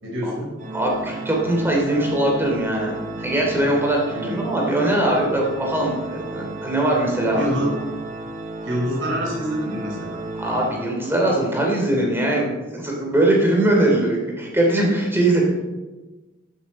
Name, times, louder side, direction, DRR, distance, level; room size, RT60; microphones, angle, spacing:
voice 1, 0.0-0.5 4.1-4.4 7.4-7.7 8.6-10.2, equal, 75° right, -3 dB, 4.5 m, -26 dB
Organ, 0.6-11.4, right 3 dB, 40° right, 0.9 m, -33 dB
voice 2, 0.7-7.4 10.4-15.6, right 1 dB, 10° right, -2 dB, 3.0 m, -21 dB
14.5 x 8.5 x 4.3 m, 1.2 s
head